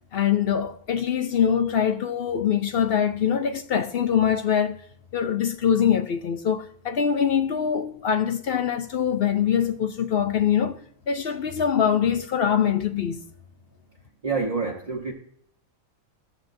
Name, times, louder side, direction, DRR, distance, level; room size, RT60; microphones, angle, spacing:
voice 1, 0.1-4.8 5.1-10.8 11.1-13.2, left 8 dB, 60° left, 0.6 m, -23 dB
voice 2, 14.2-15.1, right 4 dB, 30° right, 0.9 m, -27 dB
13.5 x 7.4 x 2.6 m
omnidirectional pair, 1.5 m